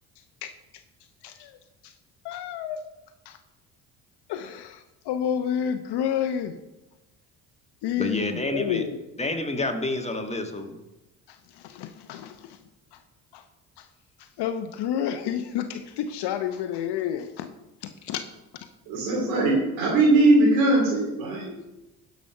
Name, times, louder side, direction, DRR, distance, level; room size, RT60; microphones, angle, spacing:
voice 1, 1.2-1.6 1.8-1.9 2.2-2.8 3.2-3.4 4.3-6.6 7.8-9.0 11.3-12.6 12.9-13.0 13.3-13.4 13.8-13.9 14.2-17.5 17.8-18.2, left 9 dB, 55° left, 9 dB, 0.8 m, -30 dB
voice 2, 8.0-8.8 9.2-10.8, left 2 dB, 15° left, 4 dB, 1.5 m, -28 dB
voice 3, 18.9-21.7, right 2 dB, 70° right, -1 dB, 2.7 m, -20 dB
11.0 x 5.2 x 5.8 m, 1.0 s
hypercardioid pair, 55°, 47 cm